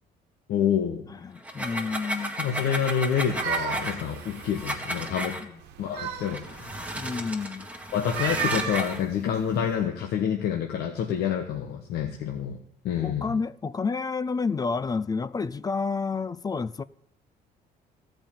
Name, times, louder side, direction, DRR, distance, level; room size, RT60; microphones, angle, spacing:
voice 1, 0.5-1.0 2.4-5.4 5.8-6.9 7.9-12.6 12.8-13.3, left 8 dB, 70° left, 1.2 m, -28 dB
voice 2, 1.1-2.4 7.0-7.7 13.0-16.8, left 4 dB, 20° left, 0.4 m, -30 dB
sound 1, 1.4-5.4 6.2-9.0, right 1 dB, 10° right, 1.7 m, -34 dB
sound 2, 3.1-5.1 5.6-6.8 7.9-9.8, right 8 dB, 85° right, 1.2 m, -34 dB
14.0 x 5.3 x 8.9 m
cardioid pair, 110°, 17 cm